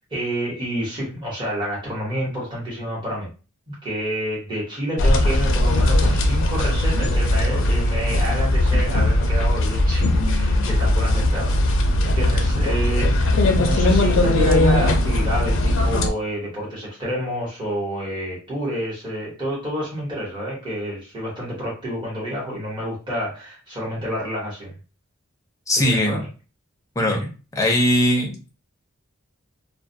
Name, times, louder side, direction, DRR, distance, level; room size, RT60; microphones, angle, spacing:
voice 1, 0.1-3.3 3.7-11.5 12.0-24.7 25.7-26.3 27.1-27.3, equal, 20° right, -6 dB, 1.1 m, -28 dB
sound 1, 5.0-16.1, left 1 dB, 65° left, 0.4 m, -19 dB
voice 2, 25.7-26.2 27.0-27.3 27.6-28.5, equal, 15° left, 1 dB, 0.5 m, -20 dB
2.3 x 2.1 x 2.6 m, 0.33 s
head